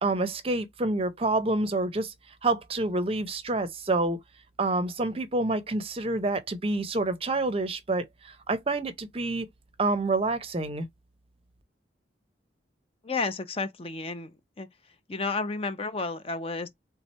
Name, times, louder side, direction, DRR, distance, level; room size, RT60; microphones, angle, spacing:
voice 1, 0.0-2.1 2.4-4.2 4.6-9.5 9.8-10.9, right 2 dB, 30° right, 0.6 m, -28 dB
voice 2, 13.0-14.7 15.1-16.7, left 3 dB, 30° left, 0.6 m, -32 dB
3.5 x 3.1 x 4.1 m
head